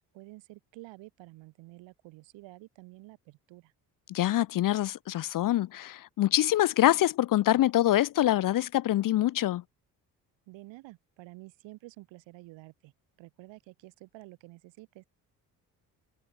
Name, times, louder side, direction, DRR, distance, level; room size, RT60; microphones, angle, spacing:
voice 1, 0.0-3.7 10.5-12.9 13.2-15.0, right 20 dB, 70° right, 4.6 m, -50 dB
voice 2, 4.1-9.6, left 14 dB, 45° left, 0.7 m, -25 dB
hypercardioid pair, 50°, 47 cm